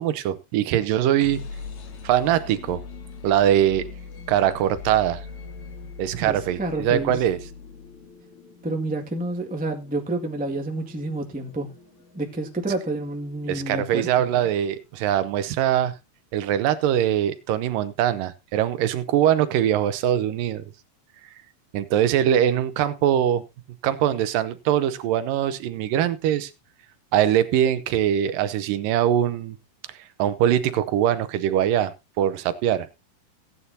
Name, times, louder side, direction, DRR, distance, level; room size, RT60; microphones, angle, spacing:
voice 1, 0.0-1.4 2.0-2.8 3.2-3.9 4.3-5.3 6.0-7.4 13.5-15.9 16.3-20.6 21.7-23.4 23.8-26.5 27.1-29.6 29.9-32.9, right 11 dB, 75° right, 2.2 m, -22 dB
sound 1, 0.9-14.8, left 5 dB, 55° left, 3.0 m, -42 dB
voice 2, 6.2-7.1 8.6-11.7 12.1-14.1, right 2 dB, 10° right, 0.3 m, -29 dB
16.5 x 9.8 x 2.8 m
omnidirectional pair, 4.2 m